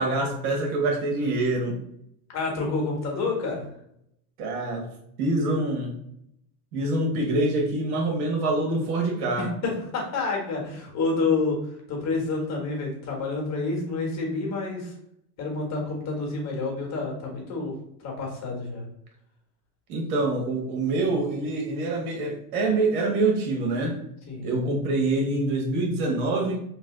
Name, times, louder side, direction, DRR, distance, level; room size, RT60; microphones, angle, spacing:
voice 1, 0.0-1.8 4.4-4.9 5.2-5.9 6.7-9.5 19.9-24.0 24.4-26.6, right 2 dB, 80° right, 1 dB, 1.3 m, -25 dB
voice 2, 2.3-3.7 9.4-14.9 15.4-18.8 24.3-24.5, left 3 dB, 35° left, -1 dB, 1.4 m, -29 dB
3.1 x 2.6 x 3.7 m, 0.74 s
supercardioid pair, 120°, 44 cm